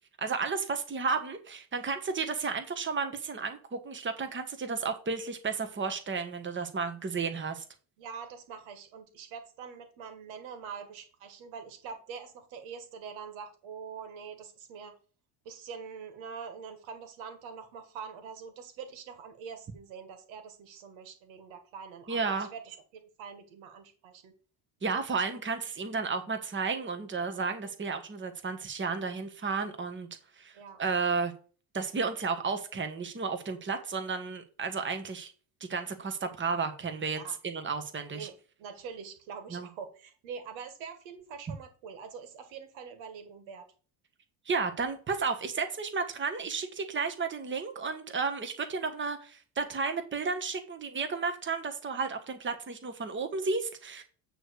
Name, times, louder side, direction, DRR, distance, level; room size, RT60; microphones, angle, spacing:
voice 1, 0.2-7.6 22.1-22.5 24.8-30.1 30.4-31.3 31.7-35.3 35.6-38.3 39.5-39.7 44.4-54.0, right 4 dB, 25° right, 1.3 m, -33 dB
voice 2, 8.0-15.0 15.5-24.3 30.5-30.8 37.2-37.4 38.1-43.7, right 6 dB, 85° right, 1.9 m, -44 dB
9.0 x 3.3 x 6.4 m
cardioid pair, 95°, 45 cm